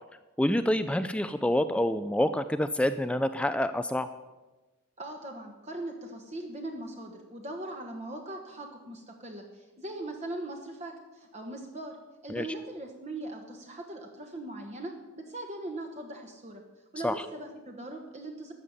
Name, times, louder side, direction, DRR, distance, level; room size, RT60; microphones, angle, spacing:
voice 1, 0.4-4.1 12.3-12.5 17.0-17.3, left 1 dB, 5° left, 10 dB, 0.3 m, -27 dB
voice 2, 5.0-12.0 12.2-16.6 16.9-18.5, right 1 dB, 30° right, 2 dB, 1.3 m, -40 dB
13.0 x 7.1 x 9.7 m, 1.1 s
head